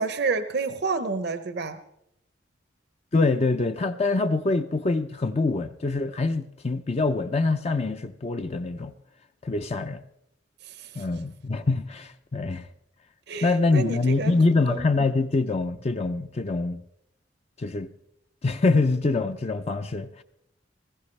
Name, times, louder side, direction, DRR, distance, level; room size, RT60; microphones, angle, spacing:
voice 1, 0.0-1.8 10.6-11.1 13.3-14.3 14.7-14.9, right 4 dB, 60° right, 0.7 m, -29 dB
voice 2, 3.1-8.9 9.4-10.0 10.9-12.7 13.4-16.8 17.6-17.9 18.4-20.2, left 3 dB, 35° left, 0.5 m, -25 dB
20.0 x 15.0 x 3.2 m
head